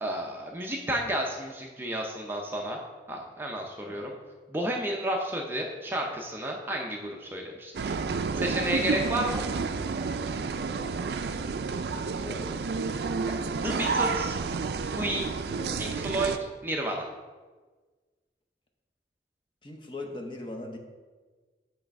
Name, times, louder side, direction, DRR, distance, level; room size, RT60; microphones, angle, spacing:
voice 1, 0.0-2.8 3.1-4.1 4.5-7.9 8.3-9.5 13.5-14.4 15.0-15.3 15.8-16.3 16.6-17.1, right 1 dB, 10° right, 0 dB, 0.5 m, -31 dB
sound 1, 7.7-16.4, right 4 dB, 65° right, 0.4 m, -30 dB
voice 2, 12.0-12.9 15.6-15.8 19.6-20.8, left 2 dB, 30° left, 2 dB, 0.7 m, -40 dB
8.4 x 3.3 x 5.2 m, 1.4 s
head